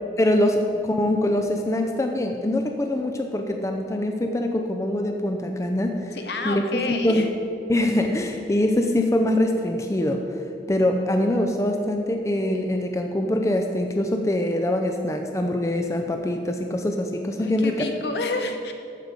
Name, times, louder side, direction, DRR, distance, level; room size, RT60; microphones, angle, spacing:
voice 1, 0.2-6.2 6.4-6.6 7.0-7.3 7.7-10.2 10.7-17.7, left 1 dB, 15° left, 4 dB, 0.4 m, -23 dB
voice 2, 6.1-7.3 17.4-18.7, left 3 dB, 70° left, 5 dB, 0.9 m, -29 dB
13.5 x 4.8 x 5.2 m, 2.6 s
head